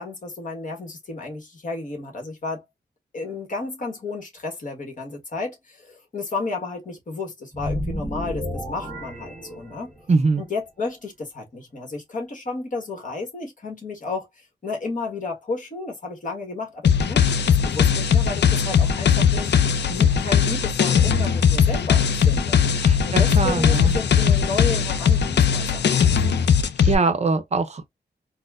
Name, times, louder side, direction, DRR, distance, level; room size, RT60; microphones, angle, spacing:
voice 1, 0.0-2.6 3.1-9.9 10.4-19.5 19.9-22.6 23.0-26.6, left 3 dB, 50° left, 1.4 m, -32 dB
sound 1, 7.5-10.1, equal, 5° right, 1.1 m, -31 dB
voice 2, 10.1-10.4 22.8-23.9 26.8-27.9, right 4 dB, 40° right, 0.5 m, -22 dB
sound 2, 16.8-26.9, left 7 dB, 85° left, 0.5 m, -19 dB
4.2 x 2.1 x 2.4 m
wide cardioid pair, 175°, 17 cm